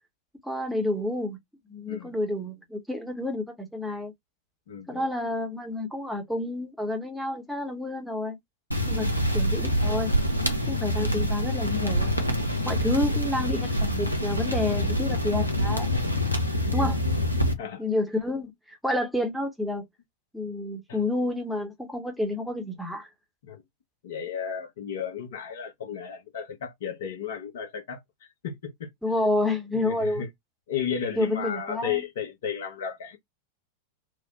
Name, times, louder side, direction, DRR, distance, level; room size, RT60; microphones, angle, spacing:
voice 1, 0.4-1.4 1.7-4.1 4.9-8.4 8.9-10.1 10.7-12.1 12.6-15.9 16.7-17.0 17.8-19.8 20.3-23.1 29.0-30.2 31.1-32.0, left 1 dB, ahead, 0.9 m, -29 dB
voice 2, 4.7-5.1 8.9-9.5 11.0-11.3 13.1-13.2 16.6-16.9 17.6-17.8 20.9-21.0 23.4-23.6 24.0-28.0 28.4-28.9 29.7-30.3 30.7-33.2, left 8 dB, 60° left, 1.0 m, -34 dB
sound 1, 8.7-17.5, equal, 90° left, 0.7 m, -26 dB
3.2 x 2.2 x 3.8 m
figure-of-eight pair, 90°, 0 cm